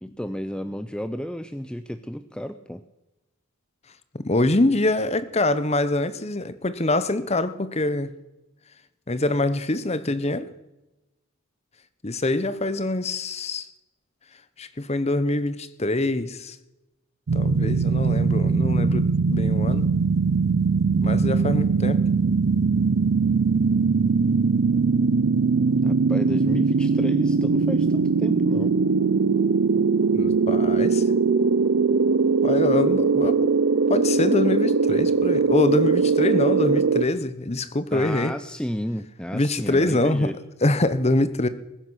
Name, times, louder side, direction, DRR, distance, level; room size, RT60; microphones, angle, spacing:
voice 1, 0.0-2.8 25.8-28.7 37.9-40.4, equal, 5° left, 10 dB, 0.5 m, -32 dB
voice 2, 4.1-8.1 9.1-10.5 12.0-13.7 14.6-16.6 17.3-19.9 21.0-22.0 30.1-31.0 32.4-33.5 33.9-38.3 39.3-40.3 40.6-41.5, left 2 dB, 30° left, 13 dB, 0.9 m, -24 dB
sound 1, 17.3-37.0, right 4 dB, 60° right, 0.5 m, -21 dB
20.5 x 10.0 x 6.3 m, 0.99 s
head